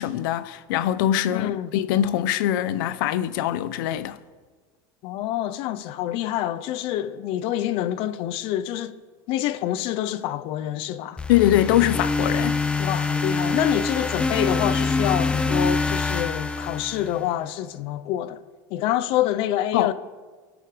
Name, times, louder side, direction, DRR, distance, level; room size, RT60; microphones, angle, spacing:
voice 1, 0.0-4.2 11.3-12.6 19.7-19.9, left 12 dB, 90° left, 0.8 m, -23 dB
voice 2, 1.3-1.7 5.0-9.0 9.3-11.2 12.8-18.4 18.7-19.9, left 12 dB, 55° left, 0.8 m, -27 dB
sound 1, 11.2-17.3, left 4 dB, 10° left, 0.7 m, -25 dB
22.0 x 12.0 x 5.1 m
cardioid pair, 155°, 11 cm